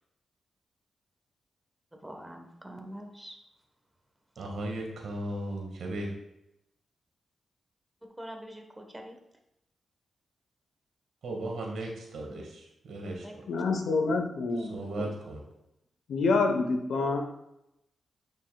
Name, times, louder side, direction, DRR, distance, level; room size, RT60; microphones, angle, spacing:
voice 1, 2.0-3.4 8.2-9.2 13.2-13.3, equal, 10° right, 3 dB, 1.2 m, -44 dB
voice 2, 4.4-6.1 11.2-13.3 14.7-15.4, right 1 dB, 80° right, 0 dB, 1.8 m, -36 dB
voice 3, 13.5-15.1 16.1-17.2, left 3 dB, 80° left, 4 dB, 1.0 m, -27 dB
9.3 x 5.4 x 2.3 m, 0.86 s
cardioid pair, 95°, 0 cm